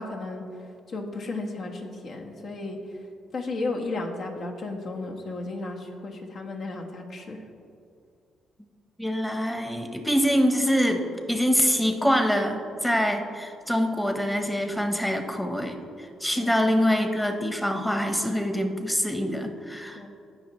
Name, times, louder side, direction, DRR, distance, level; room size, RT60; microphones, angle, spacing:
voice 1, 0.0-7.4 16.3-16.5 19.9-20.1, left 2 dB, 60° left, 1 dB, 1.4 m, -34 dB
voice 2, 9.0-15.8 16.2-20.1, equal, 5° left, 5 dB, 1.1 m, -25 dB
17.0 x 5.8 x 3.1 m, 2.4 s
cardioid pair, 90°, 0 cm